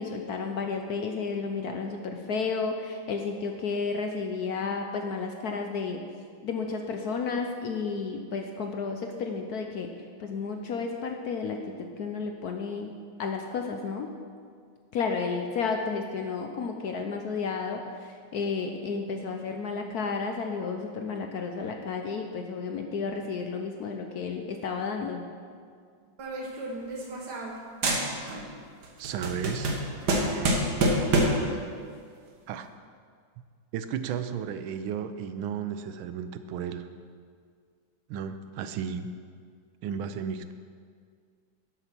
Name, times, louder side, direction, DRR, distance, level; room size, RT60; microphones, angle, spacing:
voice 1, 0.0-6.0 6.4-9.9 10.2-12.9 13.2-14.1 14.9-25.3, left 5 dB, 65° left, 4 dB, 1.0 m, -32 dB
sound 1, 26.2-27.6 27.8-28.5 28.8-31.5, right 1 dB, 60° right, 1.8 m, -27 dB
voice 2, 29.0-29.7 30.0-30.6 32.5-32.7 33.7-36.9 38.1-39.1 39.8-40.5, right 7 dB, 90° right, 10 dB, 1.5 m, -34 dB
12.0 x 6.8 x 6.0 m, 2.1 s
omnidirectional pair, 2.2 m